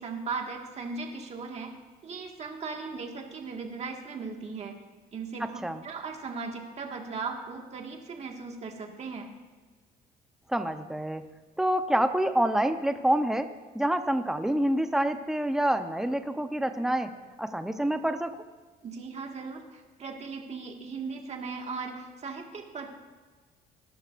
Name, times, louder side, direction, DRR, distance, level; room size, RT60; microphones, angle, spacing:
voice 1, 0.0-1.7 2.0-4.8 5.1-9.3 18.8-22.9, right 4 dB, 40° right, 2 dB, 1.9 m, -38 dB
voice 2, 5.4-5.8 10.5-11.3 11.6-13.5 13.7-17.1 17.4-18.4, right 1 dB, 5° right, 8 dB, 0.8 m, -27 dB
20.0 x 11.5 x 2.6 m, 1.4 s
cardioid pair, 110°, 17 cm